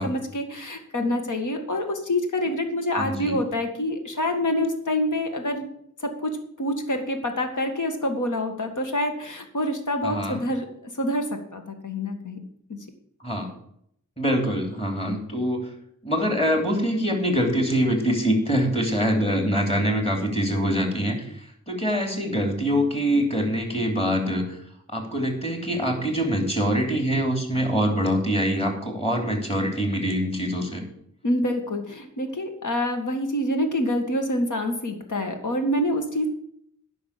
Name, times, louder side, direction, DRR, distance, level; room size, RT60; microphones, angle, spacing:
voice 1, 0.0-5.7 6.0-10.7 11.0-12.4 31.2-36.3, left 1 dB, 75° left, 5 dB, 1.9 m, -26 dB
voice 2, 3.0-3.4 10.0-10.4 13.2-13.5 14.2-15.7 16.0-24.6 24.9-30.8, equal, 20° left, 3 dB, 3.0 m, -24 dB
10.0 x 5.9 x 8.4 m, 0.70 s
wide cardioid pair, 80°, 31 cm